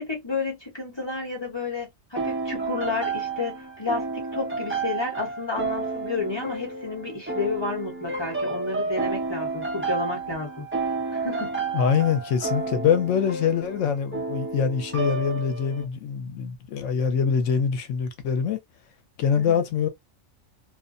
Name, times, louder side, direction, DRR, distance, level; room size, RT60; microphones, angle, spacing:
voice 1, 0.0-10.6 11.1-11.6 19.4-19.6, left 3 dB, 20° left, 1.1 m, -31 dB
sound 1, 2.2-15.8, right 3 dB, 15° right, 0.4 m, -31 dB
voice 2, 11.7-18.6 19.2-19.9, left 7 dB, 75° left, 1.0 m, -24 dB
2.5 x 2.1 x 2.5 m
omnidirectional pair, 1.3 m